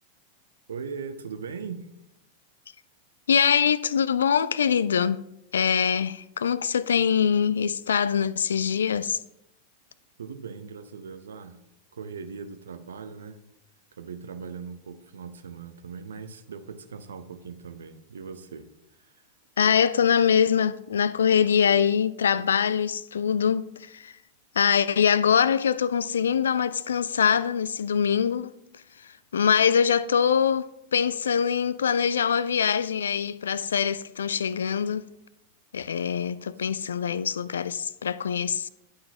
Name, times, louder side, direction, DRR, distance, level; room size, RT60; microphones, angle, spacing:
voice 1, 0.7-1.9 10.2-11.6 11.9-13.4 14.0-18.6 19.0-19.1 36.4-36.5, right 5 dB, 65° right, 0.7 m, -39 dB
voice 2, 3.3-5.2 5.5-9.2 19.6-24.1 24.6-28.5 29.3-35.0 35.7-38.7, left 7 dB, 65° left, 0.3 m, -23 dB
11.5 x 5.6 x 2.9 m
figure-of-eight pair, 90°, 0 cm